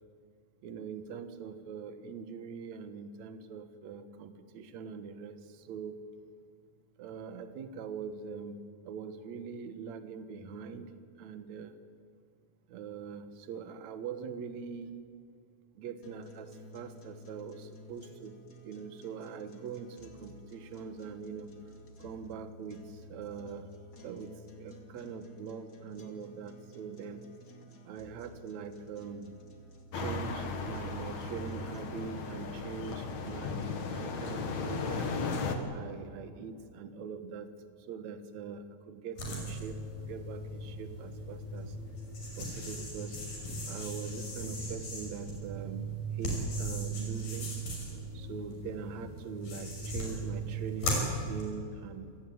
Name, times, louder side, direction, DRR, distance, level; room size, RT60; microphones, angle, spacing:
voice 1, 0.6-6.0 7.0-8.6 8.8-10.9 11.2-11.7 12.7-14.9 15.8-18.4 18.6-21.5 22.0-23.7 24.0-27.2 27.8-29.3 29.9-35.1 35.7-37.5 37.9-41.8 42.4-43.2 43.7-45.9 46.1-47.5 48.1-52.1, right 6 dB, 60° right, 9 dB, 2.5 m, -43 dB
sound 1, 16.0-32.0, left 1 dB, 30° left, 2.6 m, -52 dB
sound 2, 29.9-35.6, left 4 dB, 60° left, 3.1 m, -36 dB
sound 3, 39.2-51.4, right 1 dB, 80° left, 7.6 m, -37 dB
28.5 x 17.0 x 9.4 m, 2.4 s
omnidirectional pair, 3.9 m